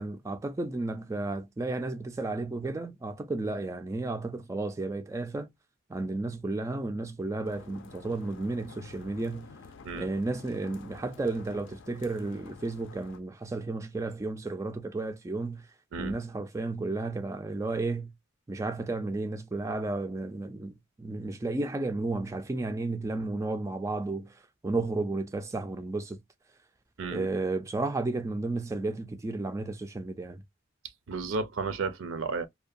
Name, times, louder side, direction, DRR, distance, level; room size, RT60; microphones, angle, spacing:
voice 1, 0.0-5.5 5.9-9.5 9.9-15.7 16.0-18.1 18.5-20.7 21.0-24.4 24.6-26.2 27.1-30.4, right 2 dB, 15° right, 0.3 m, -33 dB
sound 1, 7.4-13.2, left 4 dB, 65° left, 0.4 m, -51 dB
voice 2, 31.1-32.5, right 4 dB, 70° right, 0.5 m, -32 dB
2.6 x 2.2 x 2.4 m
head